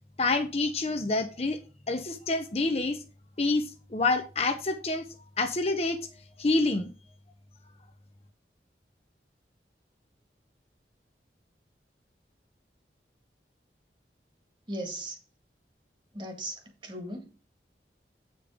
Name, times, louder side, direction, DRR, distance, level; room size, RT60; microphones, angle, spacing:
voice 1, 0.2-1.6 1.9-3.0 3.4-5.1 5.4-6.0 6.4-6.9, left 3 dB, 35° left, 0.7 m, -27 dB
voice 2, 14.7-15.2 16.1-17.3, right 1 dB, 25° right, 1.8 m, -37 dB
8.4 x 5.3 x 4.9 m
head